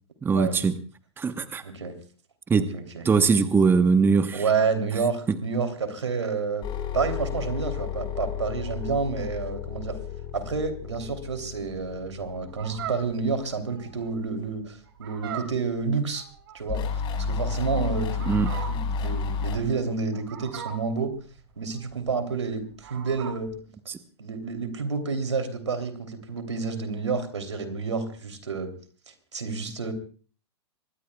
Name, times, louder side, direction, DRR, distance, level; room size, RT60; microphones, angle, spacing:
voice 1, 0.2-0.8 1.2-1.6 2.5-2.7 3.0-4.4 5.3-5.4 18.3-18.5 23.9-24.0, right 5 dB, 15° right, 10 dB, 1.1 m, -21 dB
voice 2, 1.6-1.9 2.5-3.0 4.3-6.7 6.9-10.0 10.3-16.2 16.5-16.8 17.3-18.3 18.7-21.1 21.6-23.6 24.2-28.7 29.1-29.9, right 4 dB, 80° right, 8 dB, 3.2 m, -29 dB
sound 1, 6.6-13.0 16.7-19.6, left 6 dB, 35° left, 5.1 m, -31 dB
Fowl, 12.5-23.6, right 8 dB, 60° right, 5.1 m, -41 dB
24.5 x 21.0 x 2.3 m, 0.41 s
hypercardioid pair, 105°, 15 cm